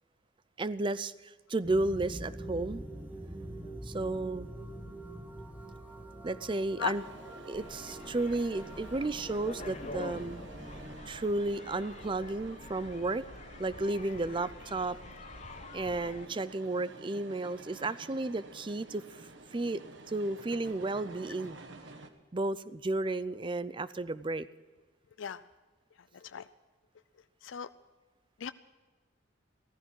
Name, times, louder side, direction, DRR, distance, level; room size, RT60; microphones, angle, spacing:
voice 1, 0.6-2.8 3.8-4.5 6.2-7.0 7.5-10.4 11.1-13.2 13.6-15.0 15.7-19.0 19.5-19.8 20.1-21.6 22.3-24.5, right 2 dB, 25° right, 16 dB, 0.5 m, -33 dB
sound 1, 1.6-11.0, right 1 dB, 10° right, 1.8 m, -45 dB
sound 2, 6.8-22.1, right 2 dB, 65° right, 1.3 m, -51 dB
sound 3, 7.5-16.3, left 3 dB, 35° left, 0.7 m, -47 dB
voice 2, 26.1-26.5 27.4-27.7 28.4-28.5, left 8 dB, 75° left, 13 dB, 0.4 m, -36 dB
16.0 x 14.0 x 6.1 m, 1.3 s
head